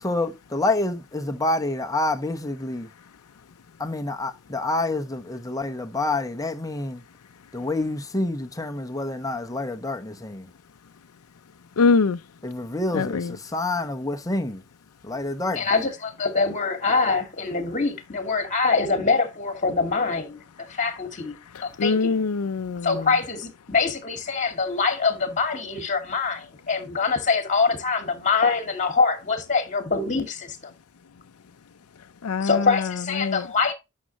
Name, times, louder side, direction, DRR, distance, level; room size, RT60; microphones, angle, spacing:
voice 1, 0.0-2.9 3.8-7.0 7.5-10.5 12.4-14.6 15.0-15.6, left 2 dB, 15° left, 1.1 m, -27 dB
voice 2, 11.8-12.2 12.9-13.4 21.8-22.9 32.2-32.7 33.2-33.4, left 4 dB, 85° left, 0.5 m, -22 dB
voice 3, 15.5-22.2 22.8-30.7 32.4-33.7, left 4 dB, 35° left, 2.3 m, -24 dB
10.5 x 6.5 x 2.9 m
head